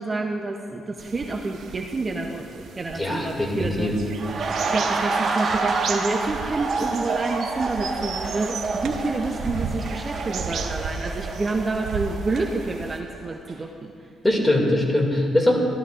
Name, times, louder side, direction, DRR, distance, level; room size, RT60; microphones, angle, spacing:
voice 1, 0.0-3.9 4.7-13.9, right 3 dB, 30° right, 2 dB, 0.7 m, -28 dB
sound 1, 1.0-13.0, right 5 dB, 65° right, 0.8 m, -35 dB
voice 2, 2.9-4.0 14.2-15.6, left 1 dB, 10° left, 0 dB, 2.3 m, -21 dB
sound 2, 4.1-13.0 13.3-13.5, right 3 dB, 45° right, 1.4 m, -29 dB
16.5 x 12.0 x 2.5 m, 2.5 s
cardioid pair, 90°, 0 cm